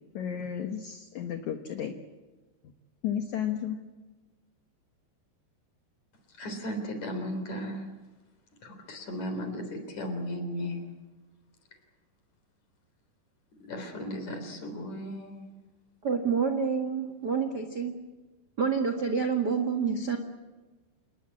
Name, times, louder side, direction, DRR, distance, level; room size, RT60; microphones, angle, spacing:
voice 1, 0.1-1.9 3.0-3.8, left 9 dB, 65° left, 6 dB, 2.0 m, -33 dB
voice 2, 6.3-7.9 8.6-10.8 13.7-15.4, equal, 45° left, 6 dB, 4.8 m, -35 dB
voice 3, 16.0-17.9 18.6-20.2, right 6 dB, 50° right, 6 dB, 1.2 m, -28 dB
28.0 x 19.5 x 8.6 m, 1.2 s
omnidirectional pair, 4.8 m